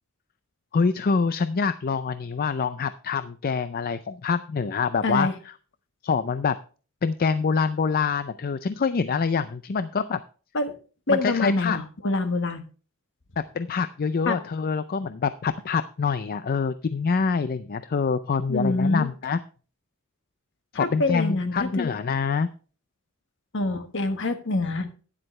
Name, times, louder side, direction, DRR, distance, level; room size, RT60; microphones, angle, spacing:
voice 1, 0.7-5.3 6.0-6.6 7.0-10.2 11.1-11.8 13.5-19.4 20.7-22.5, left 5 dB, 45° left, 12 dB, 0.4 m, -25 dB
voice 2, 5.0-5.3 10.5-10.8 11.1-12.6 14.2-14.4 18.5-19.1 20.8-21.9 23.5-24.9, left 2 dB, 60° left, 8 dB, 1.4 m, -25 dB
12.0 x 10.0 x 3.2 m, 0.38 s
head